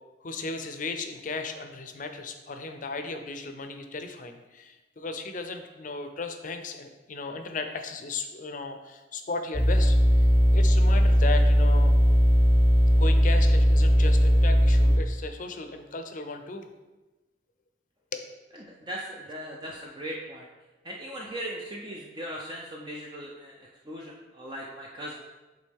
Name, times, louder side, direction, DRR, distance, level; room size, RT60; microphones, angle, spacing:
voice 1, 0.2-10.3 10.5-11.9 12.9-16.7 18.1-18.3, left 3 dB, 45° left, 7 dB, 0.6 m, -36 dB
sound 1, 9.5-15.0, equal, 10° left, 0.9 m, -19 dB
voice 2, 18.6-20.5 20.8-23.5 23.9-25.2, equal, 25° right, -2 dB, 0.6 m, -38 dB
8.3 x 3.8 x 3.5 m, 1.2 s
head